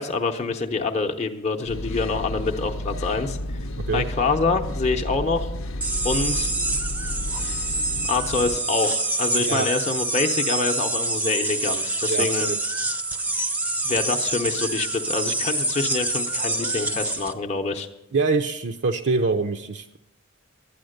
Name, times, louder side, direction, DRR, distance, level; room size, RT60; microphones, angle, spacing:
voice 1, 0.0-3.6 3.9-5.5 6.0-6.5 8.1-12.5 13.8-17.9, left 4 dB, 35° left, 3 dB, 0.7 m, -26 dB
sound 1, 1.7-8.6, left 1 dB, 75° left, 0.7 m, -31 dB
sound 2, 5.8-17.3, right 2 dB, 10° right, 0.6 m, -26 dB
voice 2, 9.4-9.7 12.1-12.6 18.1-20.0, right 4 dB, 55° right, 4 dB, 0.5 m, -24 dB
12.0 x 9.5 x 6.5 m, 0.90 s
head